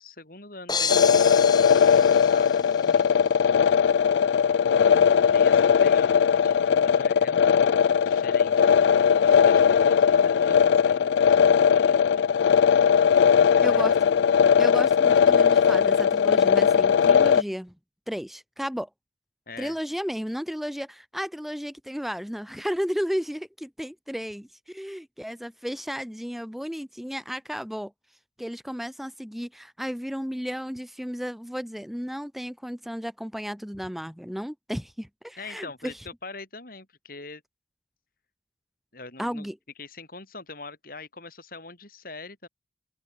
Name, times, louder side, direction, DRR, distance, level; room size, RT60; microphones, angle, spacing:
voice 1, 0.0-3.4 4.6-8.9 9.2-12.3 13.3-14.2 19.5-19.8 35.4-37.4 38.9-39.5 39.8-42.5, left 3 dB, 55° left, 5.6 m, -43 dB
sound 1, 0.7-2.9, left 6 dB, 25° left, 2.4 m, -31 dB
sound 2, 0.9-17.4, left 7 dB, 85° left, 0.3 m, -19 dB
voice 2, 13.6-14.0 14.6-17.7 18.1-18.9 19.6-27.9 28.4-35.9 39.2-39.6, equal, ahead, 0.6 m, -33 dB
open air
head